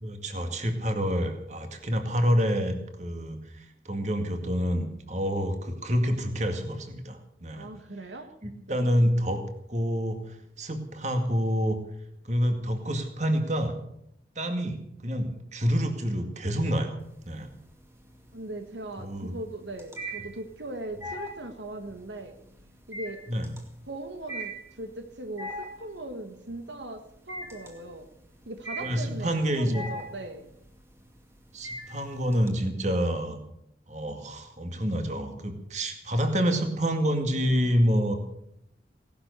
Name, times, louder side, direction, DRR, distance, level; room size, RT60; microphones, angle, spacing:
voice 1, 0.0-7.7 8.4-9.4 9.7-11.8 12.2-13.8 14.4-17.0 17.3-17.5 19.0-19.3 23.3-23.5 28.8-29.8 31.5-33.4 33.9-38.2, equal, 40° right, 6 dB, 2.1 m, -27 dB
voice 2, 7.5-8.3 8.7-8.9 18.3-22.3 22.9-23.2 23.9-28.1 28.4-30.5, right 2 dB, 80° right, 7 dB, 1.6 m, -39 dB
sound 1, 17.0-17.6 18.0-32.5, right 1 dB, 15° right, 2.2 m, -40 dB
18.0 x 12.0 x 6.8 m, 0.74 s
head